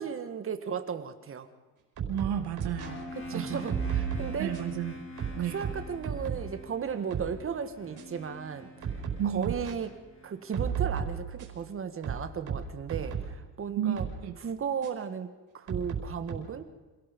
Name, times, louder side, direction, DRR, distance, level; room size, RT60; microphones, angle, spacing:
voice 1, 0.0-1.5 3.1-4.6 5.4-8.9 9.2-10.0 10.2-14.1 14.4-15.3 15.5-16.7, right 7 dB, 35° right, 9 dB, 1.7 m, -35 dB
sound 1, 2.0-2.9 3.7-4.7 5.2-6.5 6.9-7.3 8.0-8.1 8.8-9.7 10.5-11.6 12.0-13.4 14.0-14.2 14.8-14.9 15.7-16.3, right 7 dB, 55° right, 4.9 m, -34 dB
voice 2, 2.1-3.0 3.3-3.7 4.4-5.0 5.3-5.6 9.2-9.5 13.7-14.3, right 10 dB, 85° right, 5 dB, 2.1 m, -32 dB
sound 2, 2.8-10.6, equal, 35° left, 4.9 m, -44 dB
26.5 x 18.5 x 5.3 m, 1.2 s
cardioid pair, 160°, 38 cm